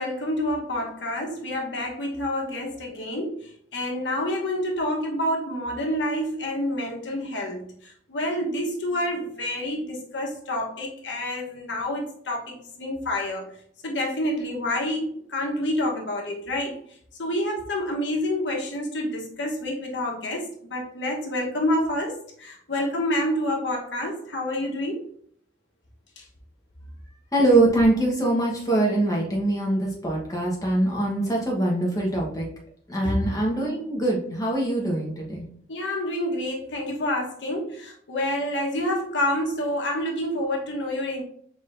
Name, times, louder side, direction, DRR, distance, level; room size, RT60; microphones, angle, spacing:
voice 1, 0.0-13.4 13.8-16.8 17.2-25.1 26.2-26.3 33.0-33.1 35.7-41.2, left 1 dB, 85° left, 0 dB, 1.1 m, -28 dB
voice 2, 27.3-32.5 32.9-35.4, right 1 dB, 20° left, -2 dB, 1.1 m, -23 dB
5.0 x 3.7 x 2.6 m, 0.63 s
head